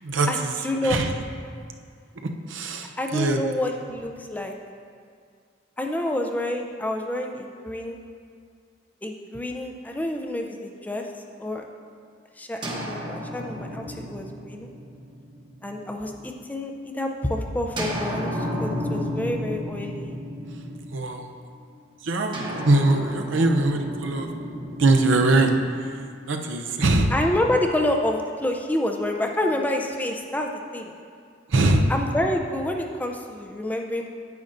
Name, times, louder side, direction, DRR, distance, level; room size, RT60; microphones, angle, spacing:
voice 1, 0.0-0.5 0.8-1.1 2.2-3.4 20.9-21.3 22.0-24.3 24.8-25.5 25.8-26.0 26.2-27.1 31.5-31.9, right 2 dB, 90° right, 4 dB, 0.6 m, -22 dB
voice 2, 0.6-1.0 3.0-4.6 5.8-8.0 9.0-11.1 11.4-11.6 12.4-14.7 15.6-20.2 27.1-30.9 31.9-34.1, left 1 dB, 10° left, 2 dB, 0.4 m, -28 dB
sound 1, 12.6-16.4 17.8-21.3 22.3-26.5, equal, 25° right, 0.9 m, -33 dB
9.4 x 8.6 x 2.6 m, 2.2 s
head